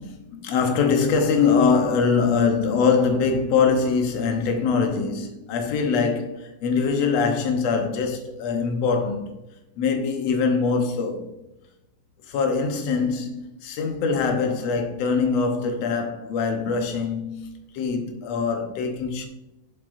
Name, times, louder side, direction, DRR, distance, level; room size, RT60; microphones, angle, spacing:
voice 1, 0.0-9.3 9.8-11.3 12.2-19.3, left 5 dB, 80° left, 1.5 m, -23 dB
8.2 x 7.2 x 2.5 m
omnidirectional pair, 4.3 m